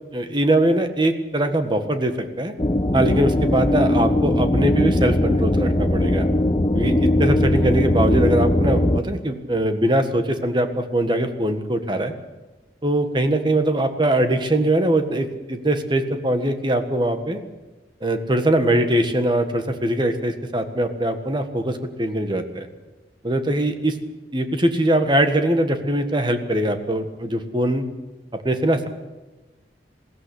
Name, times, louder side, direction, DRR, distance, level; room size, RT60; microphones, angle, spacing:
voice 1, 0.1-2.5 2.9-6.3 6.7-12.1 12.8-17.4 18.0-22.7 23.2-24.0 24.3-27.8 28.3-28.9, right 1 dB, 25° right, 7 dB, 1.6 m, -22 dB
sound 1, 2.6-9.0, left 1 dB, 25° left, 1.0 m, -20 dB
21.0 x 16.0 x 8.4 m, 1.2 s
head